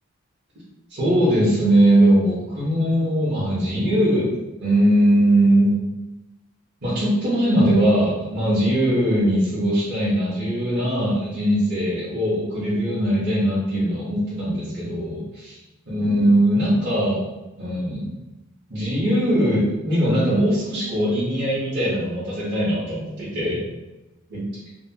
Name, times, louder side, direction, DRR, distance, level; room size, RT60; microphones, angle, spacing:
voice 1, 0.9-4.3 4.6-5.7 6.8-15.6 15.9-17.2 17.6-18.1 18.7-23.6 24.3-24.4, right 1 dB, 50° right, -10 dB, 0.9 m, -20 dB
2.8 x 2.2 x 2.8 m, 1.0 s
head